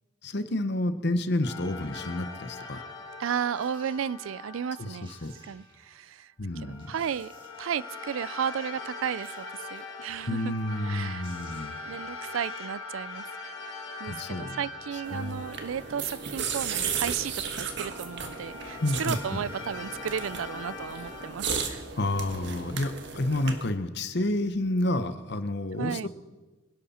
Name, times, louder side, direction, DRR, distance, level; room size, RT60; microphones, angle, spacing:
voice 1, 0.2-2.8 4.8-5.3 6.4-6.9 10.3-11.8 14.1-14.6 15.1-15.4 18.8-19.4 22.0-26.1, left 1 dB, 60° left, 11 dB, 1.0 m, -30 dB
sound 1, 1.4-5.6 6.5-17.0 17.5-21.3, left 3 dB, 80° left, 3.3 m, -42 dB
voice 2, 3.2-5.1 5.5-7.3 7.6-10.5 10.8-11.3 11.9-13.2 14.0-21.8 25.8-26.1, right 8 dB, 90° right, 21 dB, 0.4 m, -34 dB
sound 2, 3.5-4.0 4.7-4.8 5.0-5.8 6.4-6.5 6.8-7.8 9.1-10.0 10.9-11.0 11.2-11.9 12.2-12.3, right 2 dB, 25° right, 2.4 m, -56 dB
sound 3, 15.0-23.7, right 6 dB, 60° right, 1.5 m, -35 dB
25.0 x 11.0 x 4.3 m, 1.2 s
head